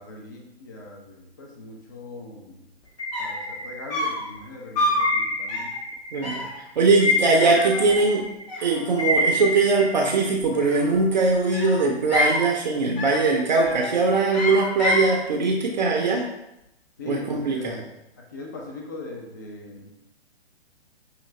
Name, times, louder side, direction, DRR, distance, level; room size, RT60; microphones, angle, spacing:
voice 1, 0.0-2.7 3.2-5.7 17.0-19.9, left 2 dB, 20° left, 0 dB, 0.3 m, -40 dB
sound 1, 2.8-2.9 3.1-3.5 3.9-4.3 4.8-5.1 5.5-5.8 6.2-6.6 7.4-8.2 8.5-9.2 10.4-11.1 11.5-12.5 13.0-13.3 13.6-13.9 14.3-15.1, left 1 dB, 40° left, 1.4 m, -27 dB
sound 2, 3.0-4.3 5.0-6.3 6.6-10.3, left 2 dB, 85° left, 0.9 m, -27 dB
voice 2, 6.1-8.3 8.6-16.3 17.1-17.8, right 3 dB, 45° right, 1 dB, 0.5 m, -21 dB
5.6 x 2.5 x 3.1 m, 0.87 s
figure-of-eight pair, 130°, 32 cm